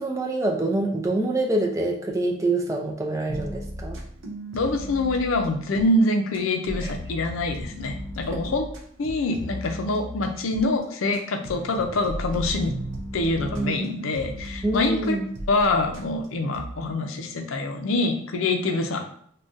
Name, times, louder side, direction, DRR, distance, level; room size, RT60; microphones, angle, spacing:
voice 1, 0.0-4.0 6.8-6.9 8.3-8.4 13.4-13.9 14.6-15.3, right 2 dB, 15° right, 0 dB, 0.4 m, -26 dB
sound 1, 3.3-6.0 6.3-10.6 11.1-16.3 16.5-16.7, equal, 65° right, 0.5 m, -36 dB
voice 2, 4.5-8.7 9.0-12.8 13.1-15.2 15.5-19.1, left 2 dB, 90° left, 4 dB, 0.5 m, -25 dB
3.8 x 2.2 x 2.5 m, 0.62 s
head